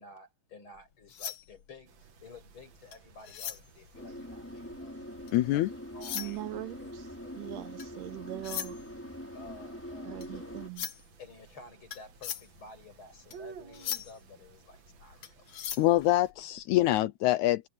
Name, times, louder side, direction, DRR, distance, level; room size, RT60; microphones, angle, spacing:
voice 1, 0.0-6.3 6.8-7.5 8.5-8.6 9.3-10.5 11.2-16.2, left 3 dB, 35° left, 6.7 m, -52 dB
sound 1, 0.7-5.5 5.9-16.9, left 10 dB, 55° left, 2.2 m, -42 dB
sound 2, 1.9-16.3, right 6 dB, 55° right, 2.8 m, -56 dB
sound 3, 3.9-10.7, equal, 5° left, 6.3 m, -43 dB
voice 2, 5.3-5.7 15.8-17.7, left 15 dB, 85° left, 1.6 m, -25 dB
voice 3, 6.1-7.1 7.4-8.8 10.1-10.9, right 16 dB, 75° right, 2.2 m, -41 dB
omnidirectional pair, 4.2 m